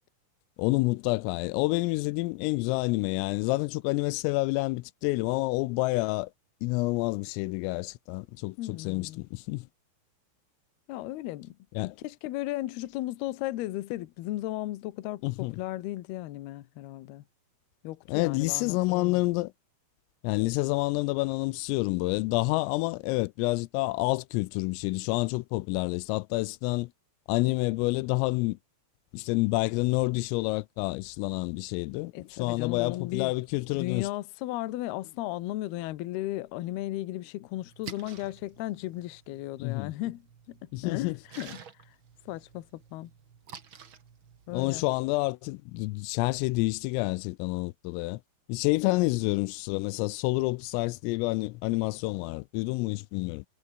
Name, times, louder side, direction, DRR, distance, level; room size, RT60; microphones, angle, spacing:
voice 1, 0.6-6.3 6.6-9.7 11.8-12.0 15.2-15.6 18.1-19.5 20.2-26.9 27.3-28.6 29.1-34.1 39.6-39.9 40.7-41.2 44.5-48.2 48.5-53.4, left 23 dB, 90° left, 3.3 m, -28 dB
voice 2, 8.6-9.2 10.9-11.6 11.8-17.2 17.8-19.2 32.1-33.3 33.7-41.6 42.3-43.1 44.5-44.8 48.8-49.1, left 16 dB, 70° left, 2.6 m, -35 dB
Splash splatter, 37.6-45.0, right 7 dB, 90° right, 1.1 m, -50 dB
omnidirectional pair, 5.9 m